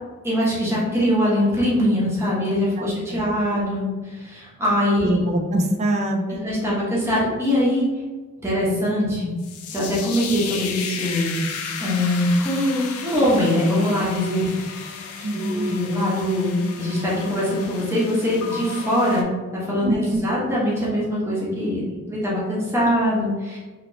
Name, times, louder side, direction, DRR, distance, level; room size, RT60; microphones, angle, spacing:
voice 1, 0.2-5.2 6.3-7.9 8.4-9.3 9.7-11.4 11.8-15.0 15.3-23.6, left 1 dB, 10° right, -7 dB, 0.9 m, -22 dB
voice 2, 5.0-6.5 15.2-15.7 19.8-20.2, right 1 dB, 30° right, 3 dB, 0.3 m, -24 dB
sound 1, 9.4-19.2, left 6 dB, 75° left, 0.4 m, -33 dB
3.0 x 2.8 x 2.6 m, 1.3 s
head